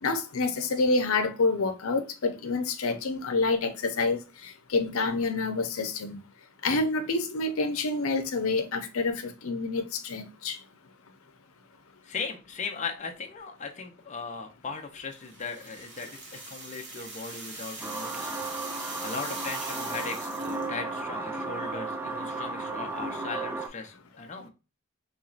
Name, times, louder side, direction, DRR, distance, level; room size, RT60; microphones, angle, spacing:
voice 1, 0.0-6.2 6.6-10.6, left 3 dB, 85° left, 0.7 m, -28 dB
voice 2, 12.0-24.5, left 4 dB, 35° left, 0.6 m, -38 dB
sound 1, 15.2-20.7, right 3 dB, 60° right, 1.4 m, -41 dB
sound 2, 17.8-23.7, right 3 dB, 10° right, 0.4 m, -34 dB
4.4 x 3.1 x 2.4 m
head